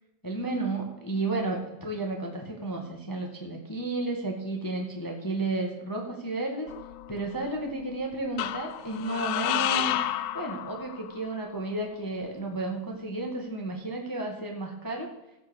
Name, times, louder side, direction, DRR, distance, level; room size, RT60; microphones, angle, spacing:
voice 1, 0.2-6.7 7.1-10.0 10.3-15.1, right 2 dB, 10° left, 1 dB, 1.0 m, -32 dB
sound 1, 6.7-7.5 8.4-11.3, left 13 dB, 80° left, 2.0 m, -31 dB
15.5 x 6.0 x 6.4 m, 1.0 s
omnidirectional pair, 3.5 m